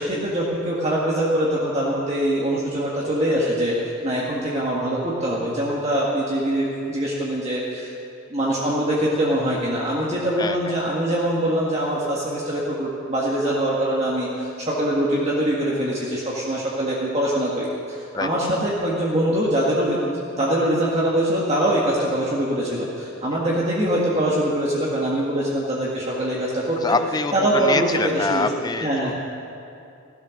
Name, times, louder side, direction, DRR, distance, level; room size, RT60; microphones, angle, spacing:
voice 1, 0.0-7.9 8.3-27.0 27.3-28.5 28.8-29.1, right 1 dB, 30° right, -5 dB, 1.8 m, -23 dB
voice 2, 10.4-10.7 18.1-18.3 26.8-29.1, left 3 dB, 20° left, 8 dB, 0.4 m, -25 dB
16.5 x 12.0 x 6.4 m, 2.6 s
head